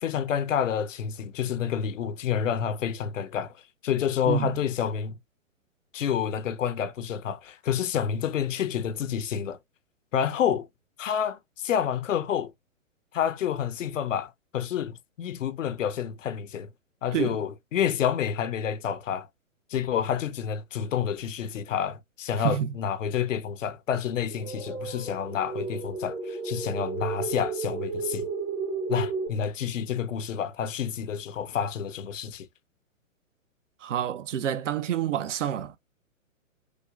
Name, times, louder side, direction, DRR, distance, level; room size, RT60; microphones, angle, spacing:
voice 1, 0.0-3.5 3.8-5.2 5.9-9.6 10.1-10.7 11.0-12.5 13.1-16.7 17.0-19.3 19.7-28.3 28.9-32.5, left 8 dB, 65° left, 0.6 m, -29 dB
voice 2, 4.3-4.6 17.1-17.4 22.4-22.7 33.8-35.8, right 10 dB, 60° right, 0.6 m, -28 dB
sound 1, 24.3-29.3, right 4 dB, 15° right, 0.5 m, -33 dB
5.0 x 2.1 x 2.2 m
hypercardioid pair, 130°, 41 cm